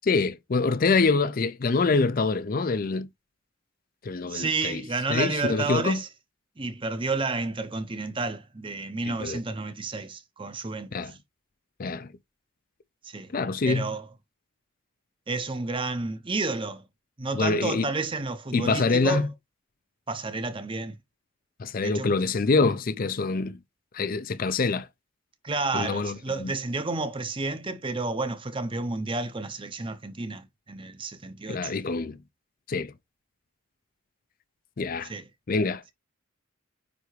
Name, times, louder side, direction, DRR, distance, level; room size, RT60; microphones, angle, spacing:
voice 1, 0.0-3.1 4.0-4.8 5.1-6.0 9.1-9.4 10.9-11.1 11.8-12.1 13.3-13.9 17.3-17.9 18.5-19.3 21.6-23.6 23.9-24.9 25.7-26.5 31.5-32.2 32.7-32.9 34.8-35.1 35.5-35.8, left 4 dB, 40° left, 0.4 m, -25 dB
voice 2, 4.3-6.1 6.6-11.2 13.0-13.3 13.6-14.1 15.3-16.8 17.2-19.3 20.1-21.0 21.8-22.1 25.4-31.7 35.0-35.3, right 3 dB, 25° right, 0.7 m, -31 dB
9.3 x 3.4 x 3.2 m
head